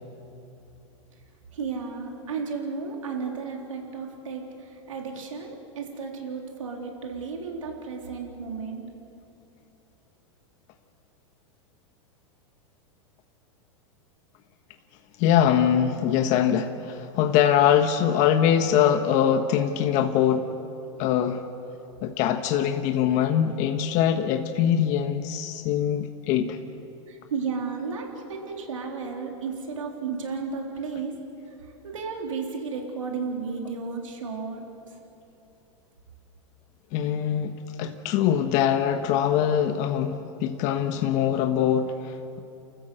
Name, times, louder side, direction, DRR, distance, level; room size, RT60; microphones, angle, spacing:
voice 1, 1.5-8.8 27.1-31.2 31.5-34.6, right 5 dB, 90° right, 1 dB, 3.6 m, -33 dB
voice 2, 15.2-20.5 21.0-21.4 22.0-26.6 36.9-42.4, left 9 dB, 50° left, 6 dB, 1.2 m, -23 dB
30.0 x 14.5 x 8.0 m, 2.9 s
hypercardioid pair, 110°, 16 cm